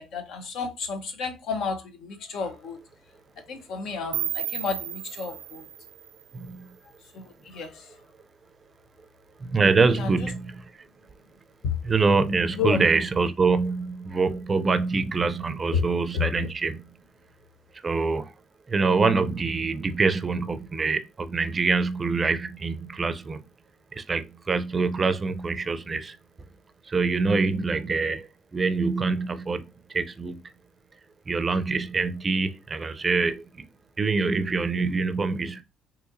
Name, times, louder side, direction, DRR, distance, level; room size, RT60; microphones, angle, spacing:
voice 1, 0.0-2.8 3.4-5.7 7.1-8.0 10.0-10.3 11.6-11.8 12.6-12.9 15.7-15.9 16.1-16.3, left 5 dB, 75° left, 0.7 m, -31 dB
sound 1, 4.1-7.1, right 12 dB, 90° right, 0.4 m, -34 dB
voice 2, 6.3-6.7 9.4-10.5 11.8-16.9 17.8-18.3 18.7-23.5 23.9-26.2 26.9-29.6 29.9-30.4 31.3-33.7 34.0-35.6, right 4 dB, 30° right, 0.4 m, -25 dB
3.9 x 2.8 x 2.5 m
cardioid pair, 90°, 0 cm